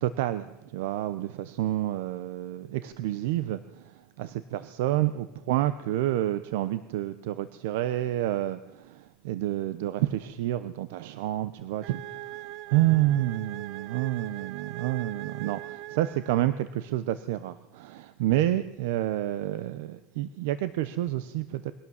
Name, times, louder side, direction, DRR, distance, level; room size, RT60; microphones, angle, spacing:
voice 1, 0.0-3.9 4.2-12.3 12.7-21.7, right 14 dB, 75° right, 14 dB, 0.8 m, -29 dB
sound 1, 11.8-16.7, right 16 dB, 45° right, 0.6 m, -41 dB
22.5 x 17.0 x 7.2 m, 1.0 s
cardioid pair, 175°, 0 cm